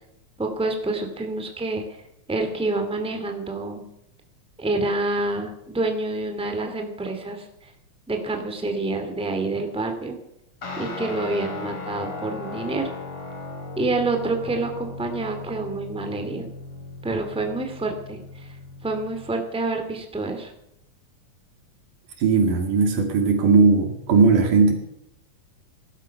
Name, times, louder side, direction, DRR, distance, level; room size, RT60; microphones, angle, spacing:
voice 1, 0.4-1.8 2.3-3.8 4.6-7.4 8.1-10.2 10.8-12.9 13.8-16.5 17.0-18.2 18.8-20.5, right 2 dB, ahead, 4 dB, 2.0 m, -27 dB
Guitar, 10.6-19.4, left 3 dB, 45° left, 3.7 m, -37 dB
voice 2, 22.2-24.7, right 4 dB, 90° right, 4 dB, 3.9 m, -18 dB
17.5 x 12.0 x 6.0 m, 0.79 s
omnidirectional pair, 3.5 m